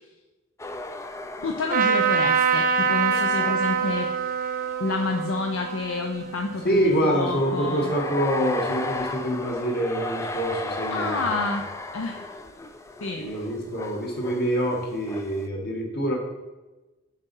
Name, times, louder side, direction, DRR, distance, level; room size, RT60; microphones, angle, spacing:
sound 1, 0.6-4.7 5.2-5.3 6.2-15.5, left 2 dB, 15° left, 0.4 m, -36 dB
voice 1, 1.4-4.1 4.8-7.9 10.9-11.6 11.9-12.2 13.0-13.2, left 3 dB, 70° left, 4 dB, 0.6 m, -29 dB
Trumpet, 1.7-7.2, right 6 dB, 45° right, 0.8 m, -25 dB
voice 2, 6.6-11.2 13.2-16.2, right 1 dB, 50° left, -1 dB, 1.7 m, -25 dB
7.2 x 4.1 x 5.4 m, 1.1 s
head